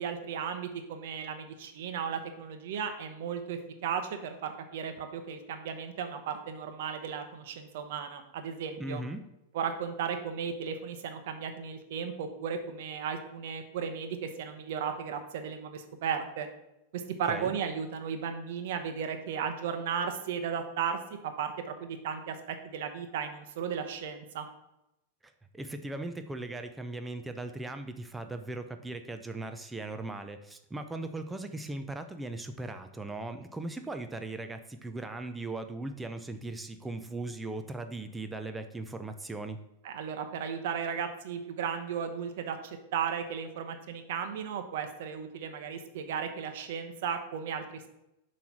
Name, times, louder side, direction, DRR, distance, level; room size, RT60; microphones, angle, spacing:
voice 1, 0.0-9.0 9.5-16.5 16.9-24.5 39.8-47.9, right 7 dB, 65° right, 7 dB, 0.9 m, -35 dB
voice 2, 8.8-9.2 17.3-17.6 25.2-39.6, right 2 dB, 10° right, 7 dB, 0.5 m, -38 dB
6.9 x 3.2 x 5.9 m, 0.87 s
hypercardioid pair, 105°, 0 cm